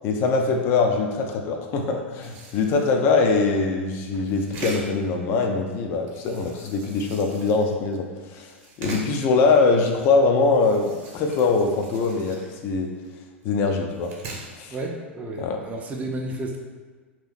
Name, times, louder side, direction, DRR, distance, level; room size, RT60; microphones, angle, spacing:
voice 1, 0.0-8.5 8.8-12.9 13.4-14.1 14.6-14.8 15.4-15.6, left 4 dB, 35° left, 3 dB, 0.5 m, -22 dB
sound 1, 2.2-3.1 4.1-5.1 6.1-7.9 8.5-9.3 10.4-12.9 13.4-13.5 13.9-14.6, right 2 dB, 40° right, 0.9 m, -40 dB
voice 2, 14.7-16.6, right 1 dB, 20° right, 1 dB, 0.5 m, -32 dB
2.9 x 2.8 x 3.9 m, 1.4 s
figure-of-eight pair, 90°, 7 cm